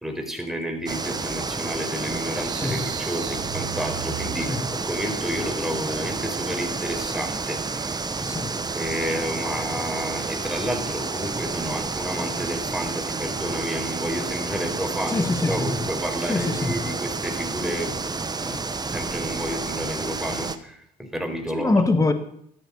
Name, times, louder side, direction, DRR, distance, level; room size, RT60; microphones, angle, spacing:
voice 1, 0.0-7.9 8.7-18.0 18.4-18.6 18.9-21.8, equal, ahead, 3 dB, 4.8 m, -30 dB
sound 1, 0.9-20.6, right 4 dB, 20° right, 1.3 m, -30 dB
sound 2, 2.1-4.9, right 16 dB, 75° right, 0.9 m, -37 dB
voice 2, 15.1-15.7 16.3-16.7 21.5-22.1, left 3 dB, 20° left, 8 dB, 1.8 m, -23 dB
14.0 x 13.0 x 5.6 m, 0.69 s
hypercardioid pair, 65°, 18 cm